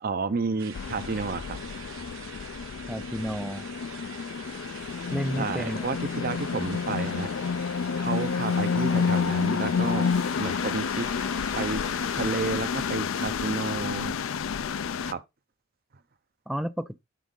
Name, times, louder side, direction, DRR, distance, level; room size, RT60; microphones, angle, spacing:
voice 1, 0.0-1.6 5.4-7.3 8.0-10.1 10.4-11.1 11.5-11.8 12.2-14.1 15.0-15.2, right 4 dB, 45° right, 0.6 m, -31 dB
sound 1, 0.6-12.3, right 7 dB, 70° right, 1.1 m, -45 dB
sound 2, 0.7-15.1, left 6 dB, 75° left, 0.4 m, -29 dB
voice 2, 2.8-3.7 5.1-5.8 16.5-17.0, equal, ahead, 0.3 m, -31 dB
8.4 x 3.9 x 3.8 m
head